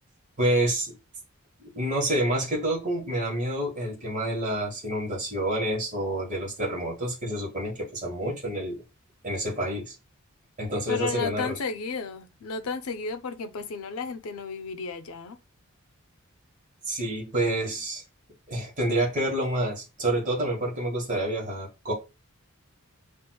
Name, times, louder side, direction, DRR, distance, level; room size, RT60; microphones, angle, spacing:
voice 1, 0.4-0.9 1.7-8.8 9.2-9.9 10.6-11.6 16.9-18.0 18.5-21.9, right 1 dB, 35° right, 1.2 m, -28 dB
voice 2, 10.9-15.4, left 4 dB, 90° left, 0.5 m, -33 dB
6.0 x 2.5 x 2.2 m
head